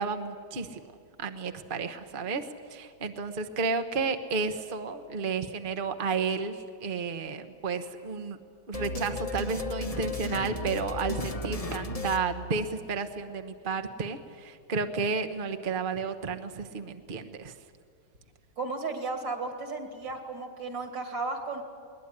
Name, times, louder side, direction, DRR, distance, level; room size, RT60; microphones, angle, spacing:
voice 1, 0.0-8.4 8.7-17.5, right 4 dB, 35° right, 7 dB, 0.9 m, -32 dB
sound 1, 8.7-13.0, left 2 dB, 30° left, 0.7 m, -35 dB
voice 2, 18.6-21.6, right 3 dB, 65° right, 5 dB, 3.2 m, -34 dB
21.5 x 19.5 x 9.8 m, 2.3 s
omnidirectional pair, 2.2 m